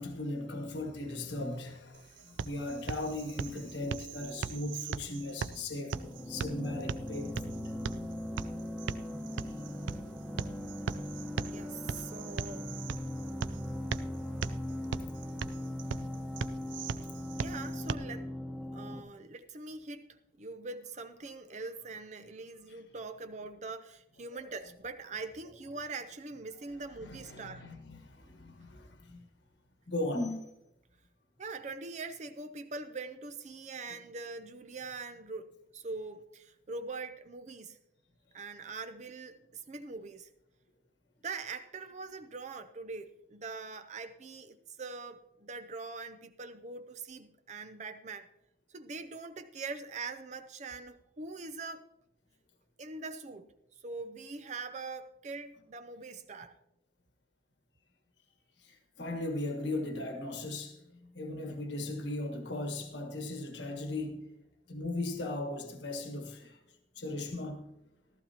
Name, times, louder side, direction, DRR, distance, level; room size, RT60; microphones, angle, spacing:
voice 1, 0.0-6.0 6.2-7.4 22.7-22.8 27.0-29.2 29.9-30.5 58.6-64.3 64.7-66.6 66.9-67.7, left 2 dB, 70° left, 1.5 m, -37 dB
sound 1, 1.9-17.9, right 5 dB, 85° right, 0.4 m, -40 dB
sound 2, 5.9-19.0, left 1 dB, 5° right, 1.1 m, -39 dB
voice 2, 11.5-12.7 17.4-18.3 18.7-27.7 31.4-37.8 38.3-40.3 41.2-48.3 48.7-51.9 52.8-53.5 53.8-56.5, right 3 dB, 40° right, 0.6 m, -43 dB
15.0 x 13.5 x 2.9 m
head